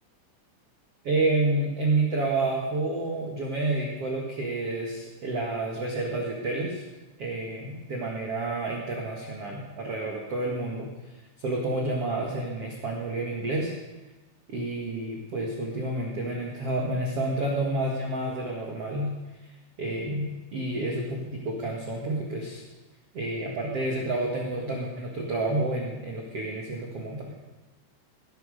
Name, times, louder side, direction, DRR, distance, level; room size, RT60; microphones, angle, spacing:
voice 1, 1.0-6.8 7.2-10.9 11.4-13.7 14.5-19.1 19.8-22.6 23.1-27.4, right 2 dB, 50° right, -1 dB, 1.9 m, -29 dB
19.0 x 10.5 x 6.6 m, 1.1 s
omnidirectional pair, 5.7 m